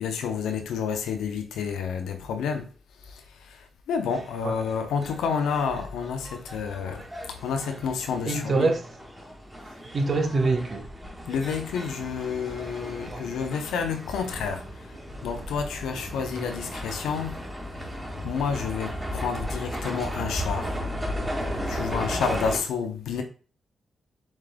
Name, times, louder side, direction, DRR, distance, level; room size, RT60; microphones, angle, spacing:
voice 1, 0.0-2.7 3.1-3.2 3.5-7.0 7.3-8.7 11.3-14.6 15.2-17.4 18.2-20.7 21.7-23.2, left 6 dB, 80° left, 0.6 m, -29 dB
sound 1, 4.1-22.6, equal, 20° right, 1.9 m, -35 dB
voice 2, 8.2-8.8 9.9-10.8 13.1-13.2, right 3 dB, 55° right, 1.0 m, -24 dB
7.3 x 3.2 x 2.2 m
hypercardioid pair, 40°, 0 cm